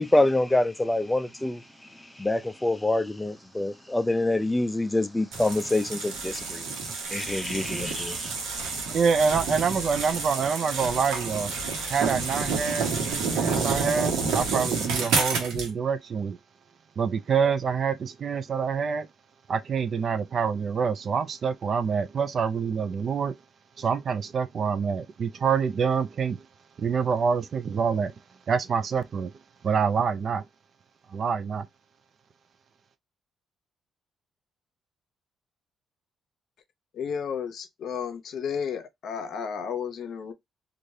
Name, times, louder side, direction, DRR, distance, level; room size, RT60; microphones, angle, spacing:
voice 1, 0.0-1.6 1.9-6.7 7.1-8.3, left 2 dB, 10° left, 0.4 m, -26 dB
sound 1, 5.3-15.7, right 4 dB, 90° right, 1.1 m, -29 dB
voice 2, 8.9-11.5 11.9-16.4 17.0-19.1 19.5-23.3 23.8-26.4 26.8-28.1 28.5-29.3 29.6-30.4 31.1-31.7, right 6 dB, 50° right, 0.4 m, -26 dB
voice 3, 36.9-40.3, left 7 dB, 70° left, 0.7 m, -32 dB
3.1 x 2.5 x 2.7 m
cardioid pair, 90°, 0 cm